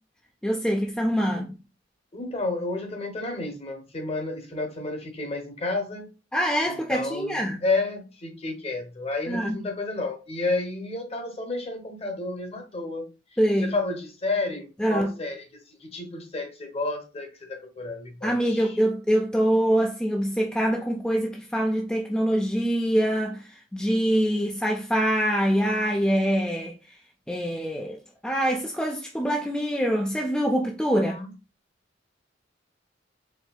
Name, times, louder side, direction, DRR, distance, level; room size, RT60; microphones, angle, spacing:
voice 1, 0.4-1.5 6.3-7.6 9.3-9.6 13.4-13.7 14.8-15.1 18.2-27.0 27.3-31.2, equal, 5° left, 0.3 m, -24 dB
voice 2, 2.1-6.1 6.7-18.8 30.9-31.3, left 2 dB, 35° left, 0.9 m, -31 dB
4.4 x 3.1 x 2.3 m
head